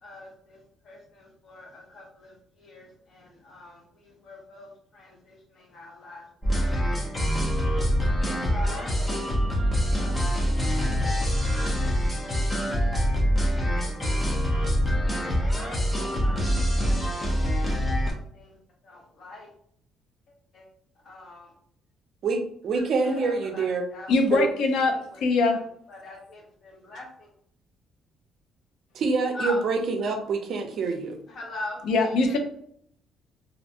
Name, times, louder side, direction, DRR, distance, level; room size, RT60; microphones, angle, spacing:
voice 1, 0.0-0.6 0.8-6.3 6.6-7.0 7.8-9.4 10.0-10.2 10.8-11.0 12.2-12.3 16.2-16.4 16.9-17.1 18.0-18.6 18.8-19.5 20.5-20.7 21.0-21.5 22.7-24.1 24.8-25.6 25.9-27.3 29.3-29.6 31.3-32.4, left 2 dB, 50° left, -1 dB, 0.9 m, -42 dB
sound 1, 6.4-18.1, equal, 15° left, 0.6 m, -25 dB
voice 2, 22.2-23.9 24.4-24.5 28.9-31.2, right 4 dB, 55° right, 4 dB, 0.5 m, -26 dB
voice 3, 24.1-24.9 25.2-25.6 31.9-32.4, left 3 dB, 75° left, 4 dB, 0.4 m, -22 dB
2.5 x 2.1 x 2.7 m, 0.65 s
cardioid pair, 135°, 0 cm